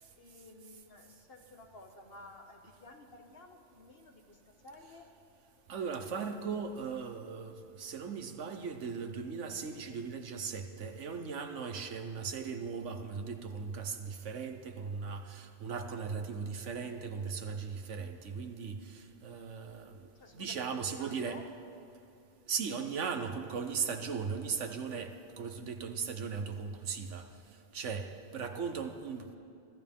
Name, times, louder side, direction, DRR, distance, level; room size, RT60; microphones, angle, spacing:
voice 1, 0.2-5.1 20.1-21.4, left 2 dB, 55° left, 3 dB, 1.6 m, -53 dB
voice 2, 5.7-20.0 20.3-21.4 22.5-27.3 27.7-29.4, right 5 dB, 80° right, 7 dB, 1.3 m, -38 dB
24.0 x 14.5 x 3.6 m, 2.6 s
omnidirectional pair, 1.2 m